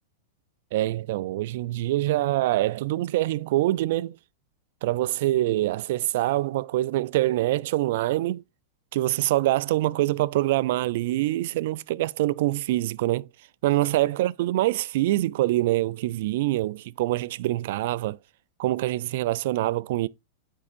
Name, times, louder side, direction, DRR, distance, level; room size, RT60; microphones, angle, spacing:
voice 1, 0.7-4.2 4.8-8.4 8.9-13.3 13.6-18.2 18.6-20.1, right 16 dB, 65° right, 0.3 m, -25 dB
8.3 x 5.5 x 2.5 m
hypercardioid pair, 110°, 0 cm